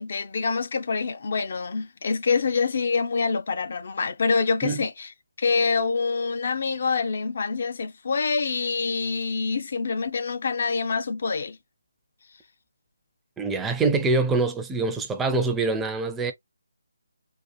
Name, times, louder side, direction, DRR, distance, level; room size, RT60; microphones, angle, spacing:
voice 1, 0.0-5.1 5.4-11.6, left 4 dB, 50° left, 0.5 m, -26 dB
voice 2, 13.4-16.3, right 3 dB, 10° right, 0.5 m, -24 dB
4.1 x 2.4 x 2.3 m
figure-of-eight pair, 150°, 0 cm